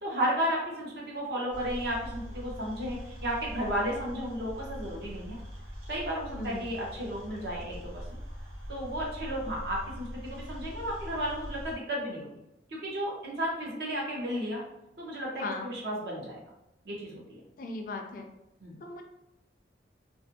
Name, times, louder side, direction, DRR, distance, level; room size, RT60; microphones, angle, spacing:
voice 1, 0.0-5.4 5.9-7.9 8.7-12.3 12.7-14.6 15.0-16.4 16.8-17.4 18.6-18.8, equal, 60° right, -3 dB, 0.8 m, -33 dB
sound 1, 1.5-11.8, equal, 85° right, 0.8 m, -42 dB
voice 2, 6.3-6.7 15.4-15.7 17.6-18.3 18.8-19.0, left 3 dB, 45° left, 4 dB, 0.3 m, -37 dB
2.5 x 2.5 x 2.6 m, 0.89 s
head